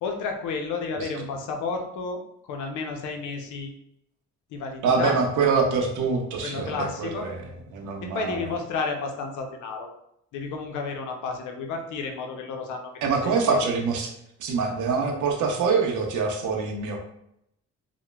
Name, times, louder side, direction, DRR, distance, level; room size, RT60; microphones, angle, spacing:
voice 1, 0.0-3.7 4.5-5.2 6.4-7.3 8.0-9.9 10.3-12.9 13.2-13.6, left 4 dB, 80° left, 4 dB, 0.5 m, -31 dB
voice 2, 4.8-7.4 7.7-8.4 13.0-14.1 14.4-17.0, right 5 dB, 80° right, 2 dB, 0.6 m, -25 dB
3.0 x 2.1 x 2.2 m, 0.77 s
cardioid pair, 90°, 30 cm